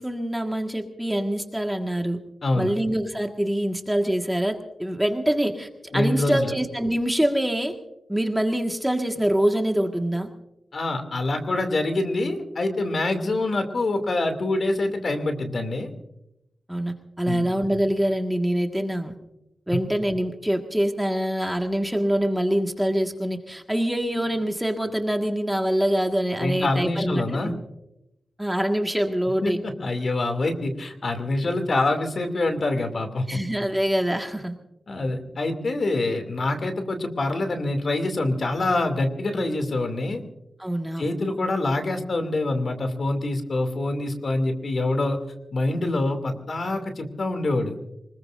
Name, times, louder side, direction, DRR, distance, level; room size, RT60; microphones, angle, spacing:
voice 1, 0.0-2.2 2.6-7.8 8.1-10.3 16.7-19.1 19.7-27.6 28.4-29.6 33.3-34.6 40.6-41.1, right 1 dB, 5° right, 3 dB, 1.7 m, -25 dB
voice 2, 2.4-2.7 5.9-6.5 10.7-15.9 17.3-17.5 26.4-27.5 29.4-33.4 34.9-40.2 41.0-45.2 45.5-47.8, left 2 dB, 55° left, 6 dB, 2.6 m, -25 dB
25.0 x 21.0 x 2.6 m, 0.87 s
wide cardioid pair, 90°, 0 cm